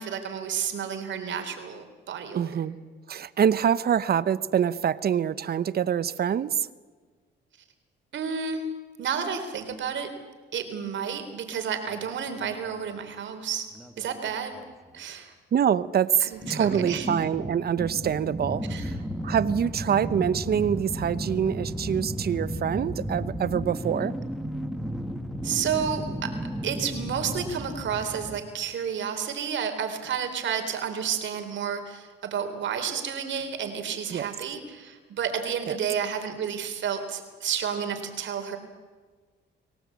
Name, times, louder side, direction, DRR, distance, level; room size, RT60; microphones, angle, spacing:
voice 1, 0.0-2.6 8.1-8.6 9.0-10.1 10.5-13.7 14.0-14.6 14.9-15.3 16.2-17.1 18.7-18.8 25.4-26.3 26.6-38.6, right 7 dB, 70° right, 7 dB, 3.9 m, -31 dB
voice 2, 2.3-2.7 3.1-6.7 15.5-19.0 19.2-24.1 34.1-34.3 35.7-35.8, right 8 dB, 50° right, 17 dB, 1.0 m, -25 dB
sound 1, 11.9-12.0 12.3-12.9 13.7-14.7 16.4-28.4, equal, ahead, 2.0 m, -34 dB
25.0 x 17.0 x 8.6 m, 1.5 s
cardioid pair, 90°, 20 cm